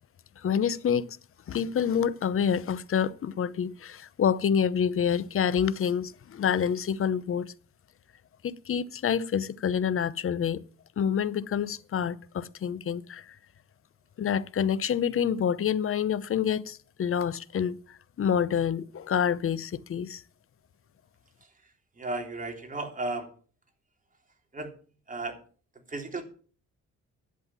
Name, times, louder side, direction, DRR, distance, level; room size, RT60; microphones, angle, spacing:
voice 1, 0.4-1.2 1.5-7.5 8.4-10.6 11.0-13.4 14.2-20.2, left 8 dB, 45° left, 0.8 m, -27 dB
voice 2, 22.0-23.3 24.5-24.7 25.1-25.4 25.9-26.2, right 2 dB, 25° right, 3.3 m, -34 dB
11.0 x 7.9 x 7.3 m
cardioid pair, 90°, 30 cm